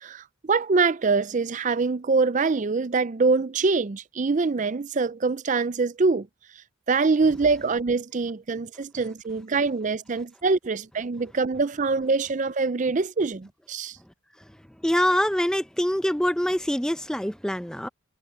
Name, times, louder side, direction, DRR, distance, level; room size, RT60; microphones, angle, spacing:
voice 1, 0.0-6.3 6.9-14.0, right 4 dB, 35° right, 0.4 m, -24 dB
voice 2, 14.8-17.9, equal, 5° left, 0.7 m, -25 dB
head